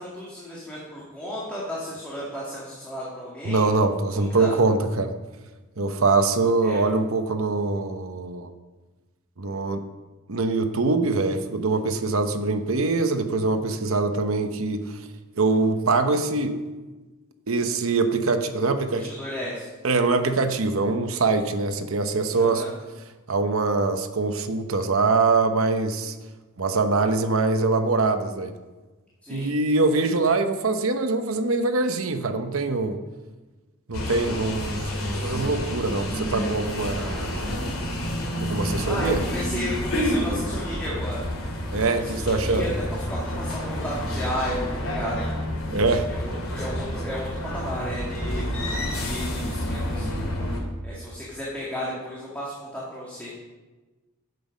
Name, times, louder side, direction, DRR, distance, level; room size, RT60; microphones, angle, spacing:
voice 1, 0.0-3.7 4.1-4.5 6.6-7.0 18.9-19.7 22.3-22.7 29.2-29.5 38.8-41.3 41.9-45.2 46.1-48.4 49.0-50.2 50.8-53.3, equal, 5° left, -7 dB, 2.1 m, -33 dB
voice 2, 3.4-5.1 5.8-8.5 9.4-9.8 10.3-15.0 15.4-16.6 17.5-19.1 19.8-22.6 23.3-26.1 26.6-28.5 29.3-33.0 33.9-34.8 35.2-37.5 38.4-39.2 41.7-42.7 45.7-46.1, right 3 dB, 70° right, 8 dB, 0.9 m, -23 dB
sound 1, 33.9-50.6, equal, 70° left, 2.5 m, -29 dB
11.0 x 8.2 x 5.3 m, 1.2 s
head